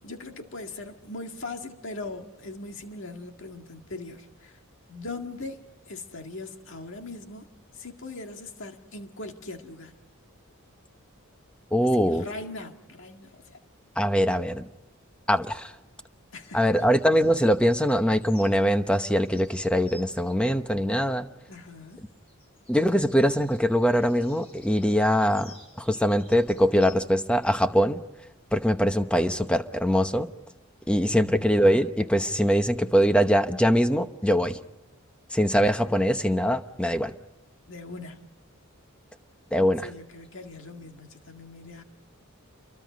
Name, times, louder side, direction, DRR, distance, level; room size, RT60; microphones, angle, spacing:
voice 1, 0.0-4.6 4.9-7.5 7.7-9.9 11.9-13.6 16.3-16.7 21.5-22.2 30.9-31.5 37.7-38.3 39.8-41.8, left 2 dB, 60° left, 2.0 m, -40 dB
voice 2, 11.7-12.2 14.0-14.6 15.3-15.7 16.5-21.3 22.7-28.0 28.5-30.3 30.9-34.6 35.3-37.1 39.5-39.9, equal, 5° left, 0.9 m, -22 dB
sound 1, 16.4-18.6 19.0-20.6 21.9-27.1, left 2 dB, 25° left, 5.8 m, -53 dB
29.5 x 23.5 x 5.2 m
head